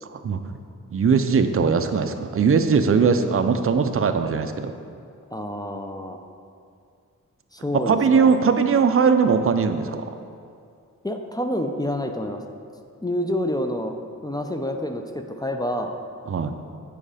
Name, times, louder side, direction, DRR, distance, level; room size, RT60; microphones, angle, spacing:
voice 1, 0.1-0.6 0.9-4.7 7.9-10.0 16.3-16.5, right 5 dB, 45° right, 8 dB, 0.5 m, -20 dB
voice 2, 5.3-6.2 7.5-8.3 11.0-12.4 13.0-14.0 14.2-15.9, left 1 dB, 10° left, 4 dB, 0.5 m, -28 dB
7.9 x 4.8 x 4.9 m, 2.4 s
wide cardioid pair, 85°, 32 cm